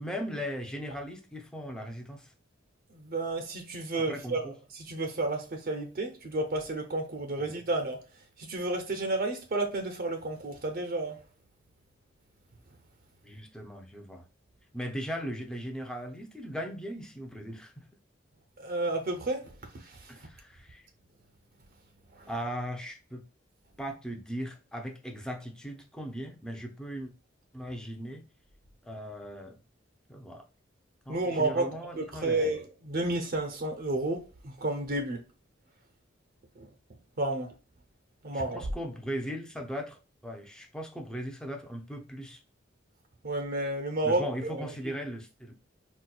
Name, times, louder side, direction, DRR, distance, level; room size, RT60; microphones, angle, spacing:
voice 1, 0.0-2.3 3.9-4.5 7.4-7.5 13.2-14.3 14.7-17.8 20.1-20.8 22.3-23.2 23.8-27.1 27.5-28.2 28.8-29.6 30.1-30.5 31.0-32.6 38.3-42.4 44.0-45.5, equal, 5° left, 0.5 m, -38 dB
voice 2, 3.0-4.5 4.7-8.0 8.4-11.2 18.6-19.5 19.8-20.1 22.2-22.3 31.1-31.7 32.0-35.2 36.6-36.7 37.2-37.5 38.2-38.6 43.2-44.2 44.5-44.6, right 2 dB, 50° right, 0.6 m, -31 dB
4.2 x 2.2 x 2.2 m
head